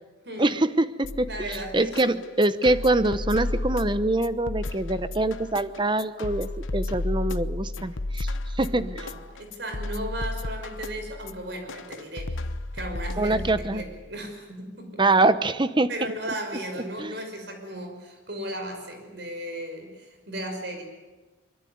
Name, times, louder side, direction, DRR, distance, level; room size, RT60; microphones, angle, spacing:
voice 1, 0.4-8.3 8.5-8.8 13.2-13.8 15.0-15.9 17.0-17.1, right 2 dB, 25° right, 13 dB, 0.9 m, -24 dB
sound 1, 1.0-14.0, left 2 dB, 85° left, 1.0 m, -33 dB
voice 2, 1.3-2.2 8.7-12.5 12.7-15.1 15.9-20.8, right 1 dB, 60° right, 5 dB, 5.8 m, -36 dB
23.5 x 23.0 x 9.5 m, 1.2 s
head